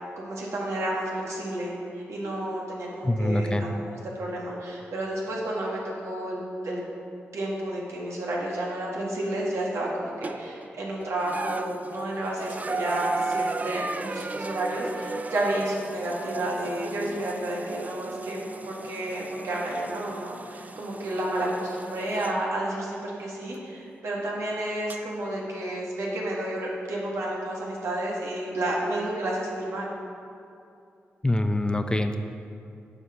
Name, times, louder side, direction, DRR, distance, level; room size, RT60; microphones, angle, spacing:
voice 1, 0.2-6.4 6.6-6.8 7.3-18.4 18.6-29.8, right 1 dB, 75° right, -3 dB, 1.8 m, -31 dB
voice 2, 3.0-3.7 31.2-32.2, left 1 dB, 20° left, 7 dB, 0.6 m, -24 dB
sound 1, 10.2-10.7 11.2-22.4 23.5-23.6 24.9-25.0, right 3 dB, 30° right, 0.4 m, -36 dB
7.4 x 4.9 x 6.3 m, 2.6 s
supercardioid pair, 45°, 5 cm